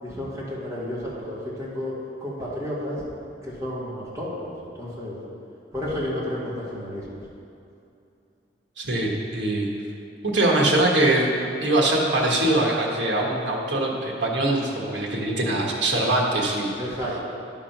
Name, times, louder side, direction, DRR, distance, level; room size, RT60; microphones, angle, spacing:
voice 1, 0.0-3.1 3.4-5.2 5.7-7.1 16.8-17.2, left 1 dB, 20° right, -8 dB, 2.0 m, -31 dB
voice 2, 8.8-9.7 10.3-11.3 11.6-16.7, right 1 dB, 85° right, -1 dB, 1.4 m, -22 dB
11.0 x 3.7 x 5.9 m, 2.6 s
head